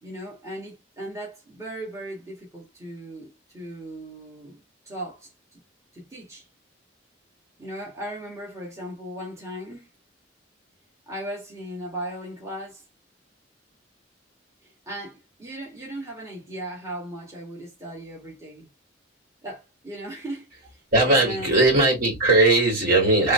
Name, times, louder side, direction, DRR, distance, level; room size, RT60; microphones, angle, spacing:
voice 1, 0.0-5.6 5.9-6.5 7.6-9.9 11.1-12.8 14.6-18.7 19.4-21.6, right 1 dB, 15° right, 1.7 m, -37 dB
voice 2, 20.9-23.3, right 2 dB, 55° right, 3.0 m, -19 dB
3.8 x 3.4 x 3.3 m
head